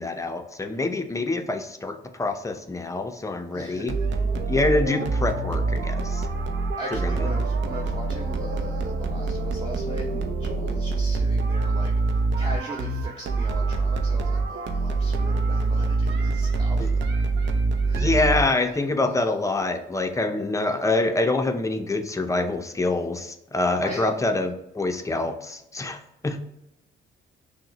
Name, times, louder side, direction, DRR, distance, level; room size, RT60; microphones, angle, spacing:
voice 1, 0.0-3.9 4.5-6.3 6.9-7.3 16.8-16.9 17.9-26.5, left 2 dB, 15° left, 6 dB, 0.4 m, -26 dB
voice 2, 3.5-4.0 6.8-16.9 17.9-18.3 23.8-24.2, right 1 dB, 20° right, -1 dB, 0.7 m, -39 dB
sound 1, 3.9-18.8, right 3 dB, 70° right, 0.6 m, -25 dB
5.9 x 2.1 x 3.0 m, 0.87 s
cardioid pair, 90°, 20 cm